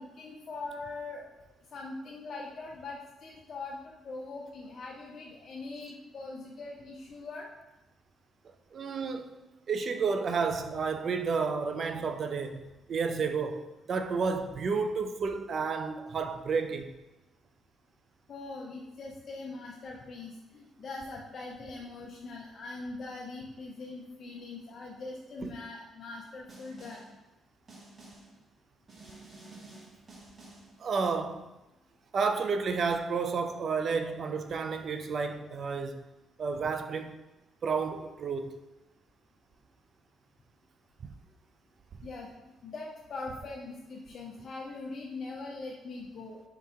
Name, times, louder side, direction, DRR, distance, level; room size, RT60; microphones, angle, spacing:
voice 1, 0.0-7.5 18.3-27.1 42.0-46.4, left 3 dB, 55° left, 0.5 m, -42 dB
voice 2, 8.7-9.3 9.7-12.6 12.9-16.9 25.4-25.5 30.8-31.5 32.1-36.0 36.4-37.2 37.6-38.6 41.0-41.1, right 5 dB, 50° right, 0.4 m, -31 dB
Snare drum, 26.5-27.2 27.7-28.4 28.9-30.8, right 2 dB, 30° right, 1.2 m, -51 dB
3.5 x 2.9 x 4.4 m
cardioid pair, 90°, 0 cm